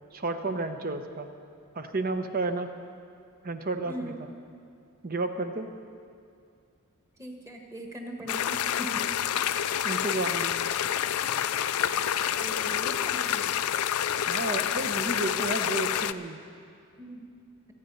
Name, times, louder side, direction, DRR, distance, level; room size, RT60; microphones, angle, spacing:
voice 1, 0.1-1.3 1.7-2.7 3.4-4.1 5.0-5.7 9.8-10.5 14.3-16.4, right 2 dB, 40° right, 7 dB, 0.9 m, -31 dB
voice 2, 3.9-4.2 7.2-9.1 12.4-13.5 17.0-17.2, right 1 dB, 15° right, 2 dB, 1.5 m, -40 dB
sound 1, 8.3-16.1, left 9 dB, 80° left, 0.4 m, -28 dB
25.5 x 9.2 x 5.5 m, 2.4 s
head